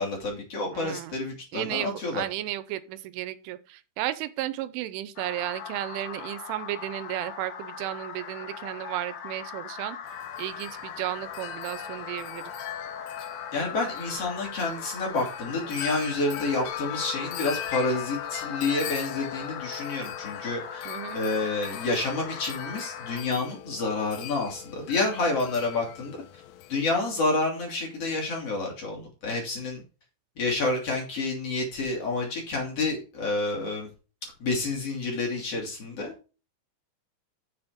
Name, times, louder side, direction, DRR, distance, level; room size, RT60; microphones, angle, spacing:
voice 1, 0.0-2.2 13.5-20.9 21.1-26.2 26.7-29.8 30.4-33.9 34.2-36.3, left 3 dB, 35° left, 3.3 m, -29 dB
voice 2, 0.7-1.2 1.5-10.0 10.4-12.5 20.9-21.2, right 14 dB, 85° right, 3.2 m, -34 dB
sound 1, 5.2-23.2, left 7 dB, 65° left, 2.6 m, -40 dB
Wind chime, 10.1-26.9, left 11 dB, 80° left, 3.2 m, -40 dB
7.6 x 7.1 x 5.1 m
omnidirectional pair, 5.5 m